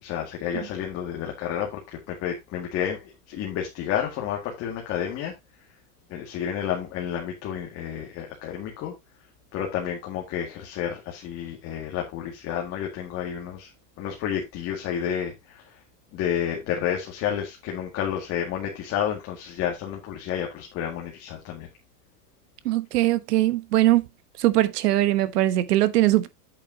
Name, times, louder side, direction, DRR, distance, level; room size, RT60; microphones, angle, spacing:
voice 1, 0.0-5.3 6.1-8.9 9.5-13.7 14.0-15.8 16.1-21.7, left 9 dB, 30° left, 2.0 m, -30 dB
voice 2, 22.6-24.1 24.4-26.3, right 15 dB, 80° right, 1.2 m, -21 dB
8.6 x 8.5 x 2.8 m
supercardioid pair, 160°, 46 cm